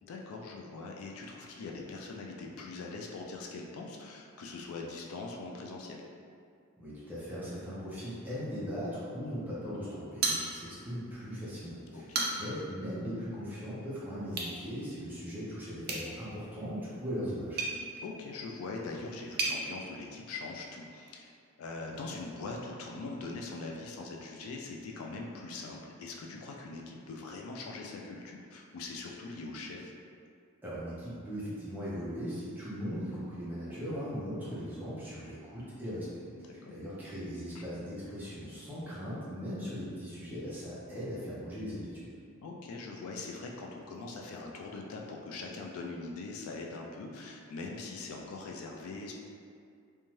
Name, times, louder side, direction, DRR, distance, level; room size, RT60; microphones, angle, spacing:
voice 1, 0.0-6.0 11.9-12.3 18.0-21.3 21.6-29.9 36.4-36.7 37.5-37.6 42.4-49.1, left 3 dB, 70° left, 0 dB, 0.3 m, -42 dB
voice 2, 6.8-17.6 30.6-42.1, equal, 10° right, -10 dB, 0.6 m, -39 dB
sound 1, 10.2-11.0 11.3-11.4 11.9-12.7 14.3-14.6 15.8-19.6, right 3 dB, 45° right, 0.4 m, -36 dB
2.6 x 2.2 x 3.1 m, 2.3 s
head